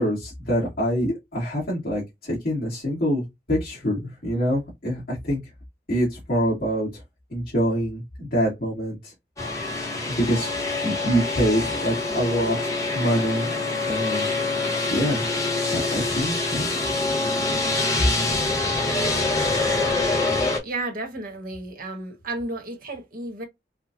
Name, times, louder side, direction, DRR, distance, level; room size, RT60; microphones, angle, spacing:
voice 1, 0.0-3.2 3.5-5.4 5.9-6.9 7.3-9.1 9.7-9.8 10.1-10.5 10.8-13.5 13.9-14.3 14.9-15.2 15.7-16.7, equal, 50° left, 2.0 m, -25 dB
sound 1, 9.4-20.6, left 3 dB, 20° left, 1.1 m, -25 dB
voice 2, 20.6-23.4, right 2 dB, 50° right, 1.3 m, -32 dB
4.7 x 2.4 x 2.6 m
head